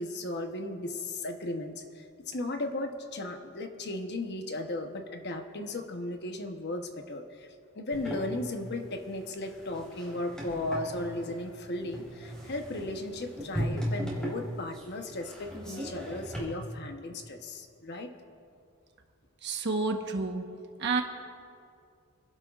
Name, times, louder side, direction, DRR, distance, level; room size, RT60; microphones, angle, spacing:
voice 1, 0.0-7.5 7.7-18.1, left 2 dB, 50° left, 5 dB, 1.0 m, -36 dB
sound 1, 7.9-16.4, equal, 5° left, 3.9 m, -38 dB
voice 2, 19.4-20.4 20.8-21.0, right 3 dB, 50° right, 4 dB, 1.2 m, -29 dB
28.5 x 12.0 x 2.5 m, 2.4 s
head